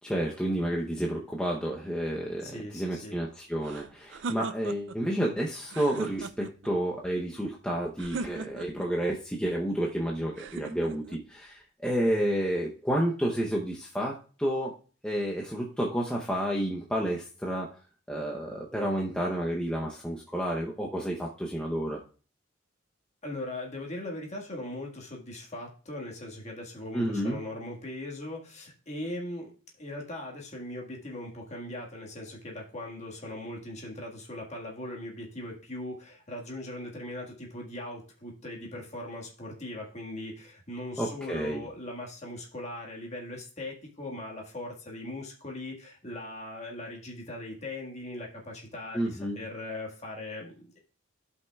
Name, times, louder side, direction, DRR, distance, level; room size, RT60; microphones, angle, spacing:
voice 1, 0.0-14.7 15.0-17.7 18.1-22.0 26.9-27.4 41.0-41.6 48.9-49.4, right 1 dB, 5° left, -2 dB, 0.7 m, -30 dB
voice 2, 2.4-3.2 23.2-29.5 29.8-50.8, left 1 dB, 35° left, -1 dB, 1.7 m, -39 dB
sound 1, 3.6-5.0 5.6-6.7 8.0-8.9 10.4-11.2, right 4 dB, 60° right, 0.4 m, -39 dB
16.0 x 5.5 x 2.3 m, 0.38 s
head